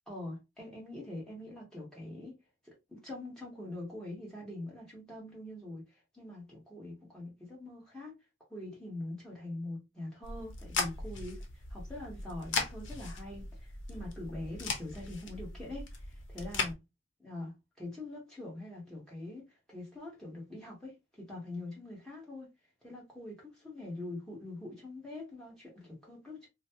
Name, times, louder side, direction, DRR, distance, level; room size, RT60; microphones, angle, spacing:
voice 1, 0.1-2.4 2.6-8.1 8.5-16.8 17.2-22.5 22.8-26.5, left 2 dB, 5° left, 1.4 m, -44 dB
sound 1, 10.2-16.7, left 4 dB, 75° left, 0.8 m, -38 dB
3.1 x 2.3 x 2.7 m
head